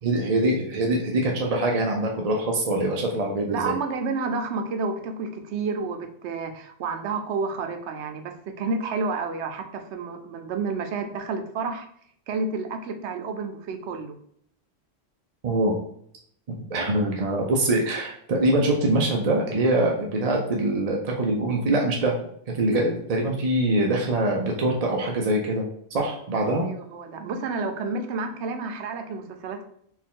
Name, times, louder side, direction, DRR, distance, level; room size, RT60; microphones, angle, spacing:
voice 1, 0.0-3.7 15.4-15.8 16.5-22.3 22.5-25.6 25.9-26.7, right 1 dB, 45° right, 0 dB, 0.5 m, -24 dB
voice 2, 3.5-11.9 12.3-14.2 26.6-29.7, right 4 dB, 90° right, 6 dB, 0.9 m, -30 dB
4.4 x 2.4 x 3.6 m, 0.66 s
omnidirectional pair, 1.1 m